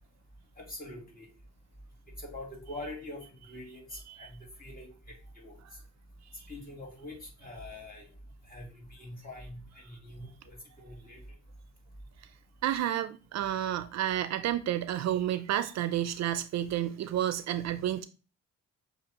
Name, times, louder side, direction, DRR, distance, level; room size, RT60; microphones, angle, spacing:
voice 1, 0.6-1.3 2.2-4.9 5.4-5.6 6.5-8.1 8.5-11.2, left 1 dB, 30° left, 2.0 m, -44 dB
voice 2, 12.6-18.0, right 11 dB, 60° right, 0.4 m, -30 dB
6.7 x 2.7 x 2.8 m
cardioid pair, 90°, 30 cm